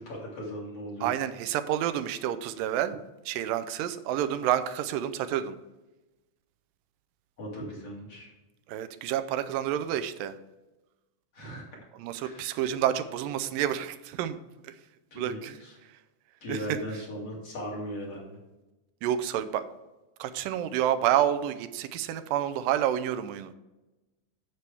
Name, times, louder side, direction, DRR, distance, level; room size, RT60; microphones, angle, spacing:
voice 1, 0.0-1.1 7.4-8.3 11.3-11.6 12.2-12.5 15.1-15.8 16.4-18.4, equal, 45° left, -3 dB, 3.3 m, -38 dB
voice 2, 1.0-3.0 3.3-5.6 8.7-10.4 12.0-14.4 14.6-14.7 15.2-15.6 16.5-16.8 19.0-19.6 20.2-23.5, right 11 dB, 90° right, 12 dB, 2.3 m, -29 dB
9.6 x 7.7 x 3.4 m, 1.0 s
omnidirectional pair, 3.9 m